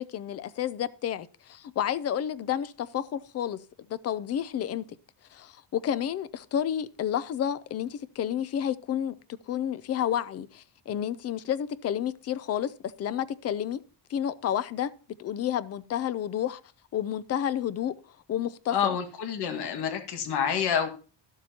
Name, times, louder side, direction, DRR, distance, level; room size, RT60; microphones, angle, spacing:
voice 1, 0.0-3.6 3.9-4.8 5.3-9.1 9.5-12.7 13.0-13.8 14.1-14.9 15.2-16.6 16.9-17.9 18.3-19.0, left 10 dB, 35° left, 0.5 m, -30 dB
voice 2, 18.7-20.9, left 8 dB, 65° left, 1.8 m, -28 dB
12.5 x 12.0 x 2.8 m
cardioid pair, 180°, 43 cm